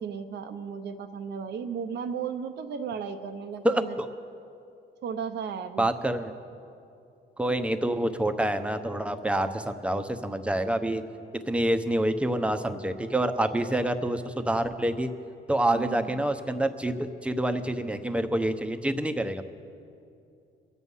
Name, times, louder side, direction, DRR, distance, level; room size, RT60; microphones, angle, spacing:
voice 1, 0.0-4.0 5.0-5.9 15.7-16.3, right 6 dB, 60° right, 8 dB, 0.8 m, -35 dB
voice 2, 3.6-4.1 5.8-6.4 7.4-11.0 11.3-15.1 15.5-19.4, right 1 dB, 5° right, 7 dB, 0.9 m, -27 dB
24.0 x 8.2 x 5.5 m, 2.5 s
cardioid pair, 90°, 20 cm